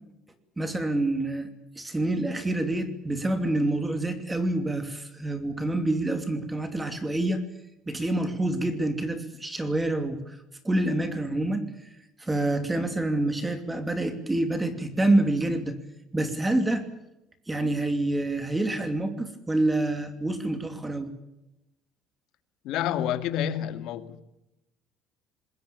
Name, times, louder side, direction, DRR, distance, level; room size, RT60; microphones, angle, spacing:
voice 1, 0.6-1.5 1.8-7.4 7.9-10.4 10.6-11.6 12.2-15.8 16.1-16.8 17.5-21.1, right 1 dB, 10° right, 2.8 m, -27 dB
voice 2, 22.6-24.2, left 10 dB, 65° left, 2.2 m, -29 dB
26.5 x 20.5 x 7.0 m
cardioid pair, 145°, 0 cm